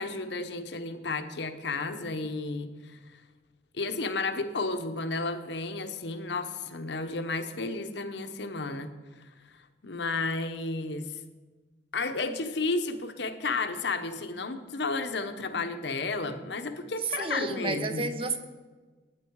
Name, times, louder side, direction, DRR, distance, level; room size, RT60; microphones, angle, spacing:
voice 1, 0.0-3.0 3.7-8.9 9.8-11.2 11.9-18.1, left 3 dB, 70° left, 8 dB, 1.0 m, -32 dB
voice 2, 17.2-18.4, right 3 dB, 30° right, 9 dB, 0.8 m, -31 dB
12.0 x 9.6 x 4.7 m, 1.3 s
head